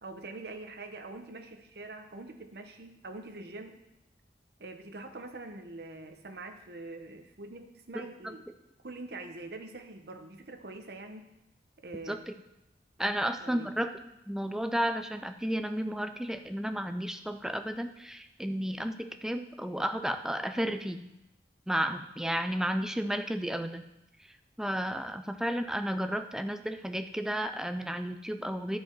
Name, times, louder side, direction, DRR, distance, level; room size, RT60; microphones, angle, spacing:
voice 1, 0.0-3.8 4.6-8.5 8.8-11.3 11.8-12.3 13.0-13.8, right 2 dB, 65° right, 5 dB, 0.9 m, -44 dB
voice 2, 7.9-8.3 12.1-12.2 13.0-14.0 14.3-21.0 21.7-23.8 24.6-28.8, equal, 5° right, 8 dB, 0.3 m, -32 dB
13.0 x 5.1 x 4.6 m, 0.89 s
head